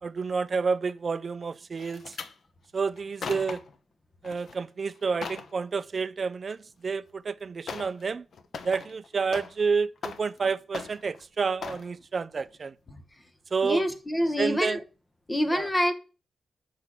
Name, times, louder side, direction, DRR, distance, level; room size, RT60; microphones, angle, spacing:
voice 1, 0.0-2.2 2.7-3.6 4.2-8.3 8.6-12.7 13.5-13.8 14.4-14.8 15.5-15.7, right 5 dB, 35° right, 0.5 m, -29 dB
sound 1, 1.8-2.3 3.0-3.8 4.2-4.6 4.9-5.5 6.9-7.0 7.7-8.0 8.3-9.7 10.0-10.4 10.7-11.2 11.6-11.9 12.4-12.6 12.9-13.0, left 5 dB, 60° left, 0.9 m, -39 dB
voice 2, 13.6-14.8 15.3-15.9, equal, 10° left, 1.2 m, -26 dB
6.6 x 6.2 x 7.4 m
wide cardioid pair, 160°, 0 cm